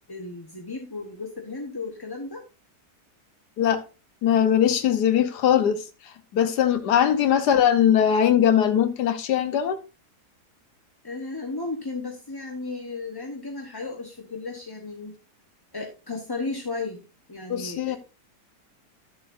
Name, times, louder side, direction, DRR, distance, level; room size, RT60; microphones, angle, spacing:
voice 1, 0.1-2.4 7.1-7.5 11.0-15.1 15.7-17.0 17.3-18.0, left 3 dB, 20° left, 0.8 m, -34 dB
voice 2, 4.2-9.8 17.5-18.0, left 9 dB, 80° left, 1.4 m, -21 dB
11.0 x 7.2 x 2.5 m
omnidirectional pair, 1.8 m